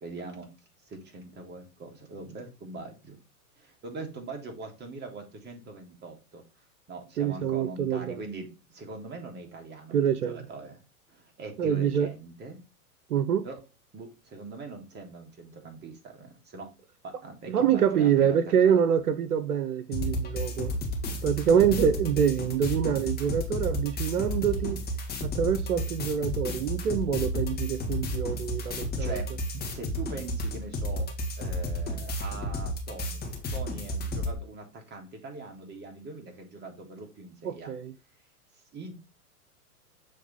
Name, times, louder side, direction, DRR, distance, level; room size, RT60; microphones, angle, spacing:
voice 1, 0.0-0.5 0.9-3.2 3.6-6.4 6.9-10.8 11.1-12.6 13.4-13.6 13.9-16.7 17.0-18.4 18.6-18.8 28.7-29.3 29.7-31.1 31.4-33.2 33.5-37.7 38.7-38.9, right 3 dB, 25° right, 1.9 m, -42 dB
voice 2, 7.2-8.2 9.9-10.4 11.6-12.1 13.1-13.5 17.5-20.8 21.2-24.8 25.2-29.2 37.4-37.9, right 8 dB, 80° right, 0.8 m, -25 dB
sound 1, 19.9-34.3, equal, 20° left, 1.6 m, -32 dB
7.3 x 3.3 x 4.1 m
hypercardioid pair, 105°, 45 cm